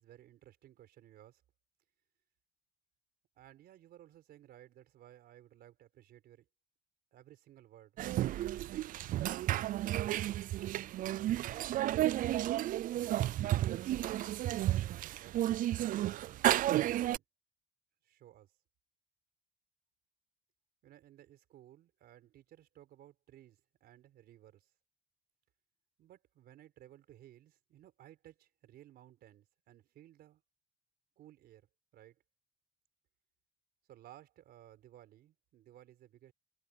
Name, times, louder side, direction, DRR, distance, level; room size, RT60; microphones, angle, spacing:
voice 1, 0.0-1.4 3.4-6.5 7.1-8.0 8.3-9.1 10.8-14.8 15.1-16.3 16.7-17.2 18.0-18.5 20.8-24.7 26.0-30.4 31.2-31.7 31.9-32.2 33.9-36.3, right 12 dB, 70° right, 4.4 m, -58 dB
sound 1, 8.0-17.2, right 14 dB, 55° right, 0.4 m, -32 dB
cardioid pair, 110°, 17 cm